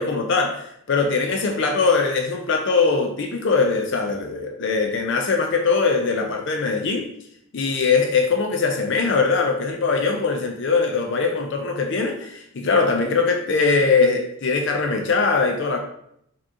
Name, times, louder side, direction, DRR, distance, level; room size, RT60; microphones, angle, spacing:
voice 1, 0.0-7.1 7.5-15.8, left 4 dB, 55° left, 3 dB, 0.5 m, -21 dB
4.8 x 2.9 x 3.6 m, 0.73 s
head